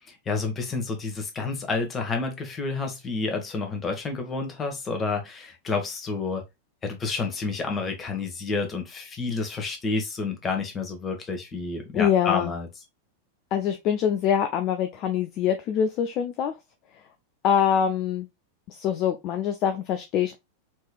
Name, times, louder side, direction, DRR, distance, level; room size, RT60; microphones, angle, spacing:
voice 1, 0.1-6.4 6.8-12.7, left 4 dB, 20° left, 1.4 m, -29 dB
voice 2, 11.9-12.5 13.5-16.5 17.4-18.3 18.7-20.4, left 8 dB, 40° left, 0.5 m, -24 dB
4.4 x 3.3 x 2.3 m
figure-of-eight pair, 90°, 0 cm